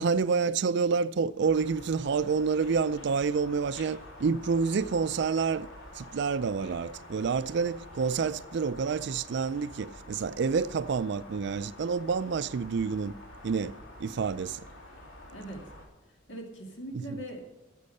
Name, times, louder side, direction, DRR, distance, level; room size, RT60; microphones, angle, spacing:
voice 1, 0.0-5.7 5.9-13.1 13.4-14.6 16.9-17.2, right 5 dB, 60° right, 0.4 m, -28 dB
sound 1, 1.4-15.9, left 1 dB, 90° left, 2.9 m, -48 dB
voice 2, 16.3-17.4, right 1 dB, 65° left, 2.2 m, -40 dB
12.0 x 7.3 x 5.5 m
head